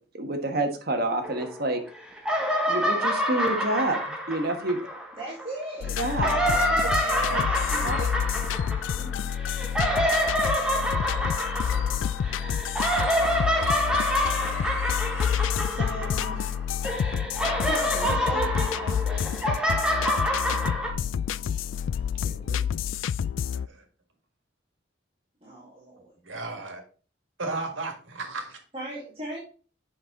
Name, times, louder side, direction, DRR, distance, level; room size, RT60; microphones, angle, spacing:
voice 1, 0.1-1.8 2.7-4.8 6.0-6.4 7.3-7.4 7.8-8.0, right 2 dB, 55° right, 1.3 m, -28 dB
sound 1, 1.2-1.9 2.2-5.4 6.0-16.6 16.8-20.9, equal, 5° right, 1.3 m, -27 dB
voice 2, 5.2-6.0 6.4-9.3 11.6-12.0 13.6-13.7 14.0-14.1 15.6-16.6 17.6-19.7 22.0-22.3 25.4-25.8 28.7-29.4, right 2 dB, 30° right, 2.0 m, -39 dB
sound 2, 5.8-23.7, left 8 dB, 85° left, 0.3 m, -29 dB
voice 3, 22.1-22.8 23.5-23.8 26.3-26.8 27.4-28.6, right 3 dB, 85° right, 1.8 m, -35 dB
7.7 x 5.5 x 3.7 m
head